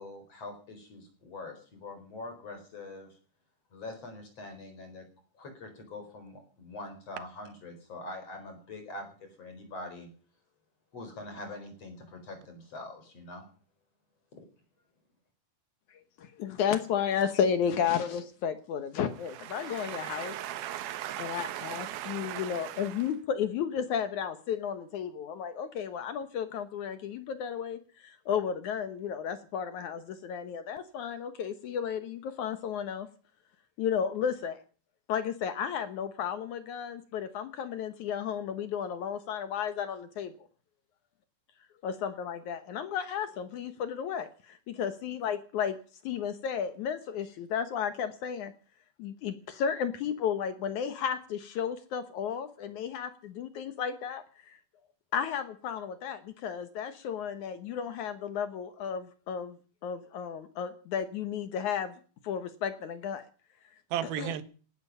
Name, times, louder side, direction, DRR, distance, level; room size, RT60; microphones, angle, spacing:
voice 1, 0.0-3.1 3.7-5.0 5.4-9.1 9.4-10.1 10.9-13.4, left 2 dB, 35° left, 5.2 m, -44 dB
voice 2, 15.9-20.4 21.2-33.1 33.8-34.6 35.1-40.3 41.8-45.8 46.0-48.5 49.0-54.6 55.1-59.6 59.8-62.0 62.2-63.2 64.2-64.3, left 8 dB, 75° left, 1.8 m, -33 dB
voice 3, 19.3-23.0 63.9-64.4, right 12 dB, 70° right, 2.9 m, -37 dB
18.5 x 14.0 x 5.6 m
omnidirectional pair, 4.9 m